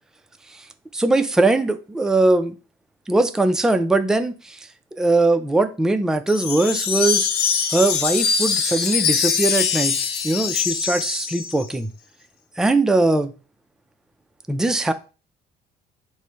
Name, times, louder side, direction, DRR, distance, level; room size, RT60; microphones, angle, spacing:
voice 1, 0.9-2.5 3.1-4.7 5.0-7.3 7.7-10.0 10.2-11.9 12.6-13.3 14.5-14.9, right 2 dB, 5° right, 0.3 m, -20 dB
Wind chime, 6.3-11.7, left 7 dB, 70° left, 0.6 m, -23 dB
4.6 x 2.1 x 4.0 m
cardioid pair, 110°, 17 cm